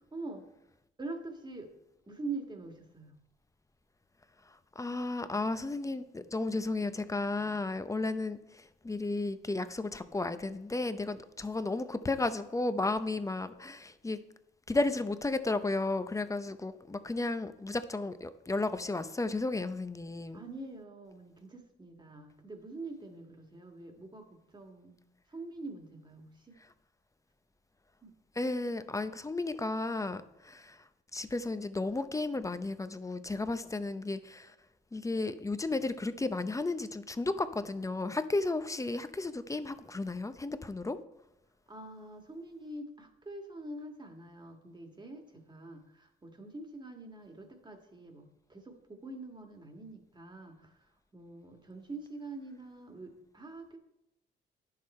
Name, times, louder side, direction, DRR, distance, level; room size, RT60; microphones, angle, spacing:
voice 1, 0.1-0.5 1.0-1.7 2.1-3.1 20.3-25.0 25.3-26.6 28.0-28.2 41.7-53.8, right 2 dB, 20° right, 4 dB, 1.7 m, -45 dB
voice 2, 4.8-14.2 14.7-20.4 28.4-30.8 31.1-34.5 34.9-41.0, left 2 dB, 15° left, 11 dB, 0.6 m, -33 dB
10.0 x 6.6 x 4.3 m, 0.86 s
cardioid pair, 90°, 20 cm